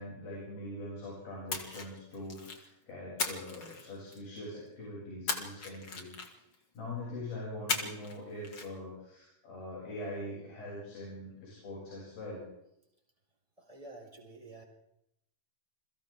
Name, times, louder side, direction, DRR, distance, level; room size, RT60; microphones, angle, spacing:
voice 1, 0.0-6.4 6.7-12.5, left 1 dB, 90° left, -4 dB, 9.7 m, -43 dB
Splash splatter, 1.5-2.7 3.2-4.4 5.3-6.5 7.7-8.2 8.4-8.7, left 4 dB, 35° left, 2.7 m, -37 dB
voice 2, 13.6-14.6, right 2 dB, 10° right, -1 dB, 4.9 m, -49 dB
29.5 x 23.0 x 3.8 m, 0.79 s
omnidirectional pair, 4.1 m